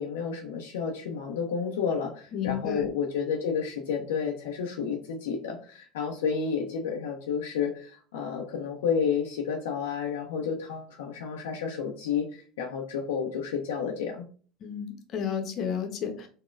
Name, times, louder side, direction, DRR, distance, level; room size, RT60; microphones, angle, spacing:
voice 1, 0.0-14.2, left 6 dB, 80° left, 2 dB, 0.5 m, -31 dB
voice 2, 2.3-2.9 14.6-16.3, left 8 dB, 50° left, 6 dB, 0.7 m, -32 dB
4.0 x 2.1 x 2.4 m, 0.41 s
hypercardioid pair, 80°, 0 cm